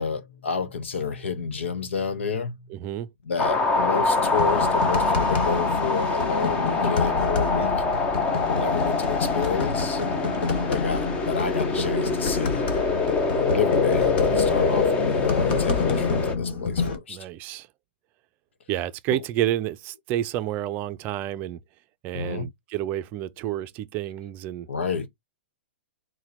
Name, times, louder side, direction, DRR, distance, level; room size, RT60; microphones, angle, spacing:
voice 1, 0.0-2.7 3.2-7.7 8.5-10.0 10.7-12.6 13.4-17.2 19.1-19.2 22.1-22.5 24.7-25.1, left 5 dB, 85° left, 1.1 m, -30 dB
voice 2, 2.7-3.1 17.1-17.7 18.7-21.6 22.0-24.7, right 12 dB, 30° right, 0.5 m, -29 dB
sound 1, 3.4-16.3, left 3 dB, 15° left, 0.7 m, -24 dB
sound 2, 3.9-17.0, left 4 dB, 60° left, 1.5 m, -29 dB
4.4 x 2.2 x 4.1 m
hypercardioid pair, 150°, 6 cm